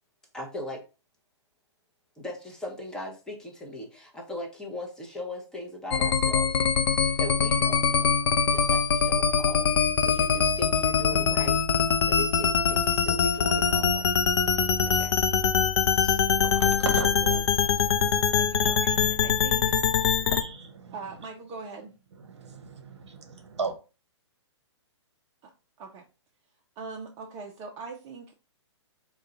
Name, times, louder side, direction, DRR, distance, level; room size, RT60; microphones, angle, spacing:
voice 1, 0.3-0.8 2.2-6.6 7.2-8.2 8.5-9.7 10.0-11.6 12.0-14.1 14.7-15.1 15.9-16.2, left 1 dB, 5° left, 0.8 m, -39 dB
sound 1, 5.9-20.4, left 6 dB, 60° left, 0.5 m, -23 dB
voice 2, 11.1-11.4 16.6-16.7 17.0-17.4 18.3-19.7 20.1-20.2 20.9-21.9 25.4-25.5 25.8-26.1 26.8-28.3, right 4 dB, 25° right, 0.5 m, -41 dB
voice 3, 16.4-21.2 22.1-23.8, right 4 dB, 70° right, 0.7 m, -39 dB
3.7 x 2.3 x 3.8 m
figure-of-eight pair, 120°, 15 cm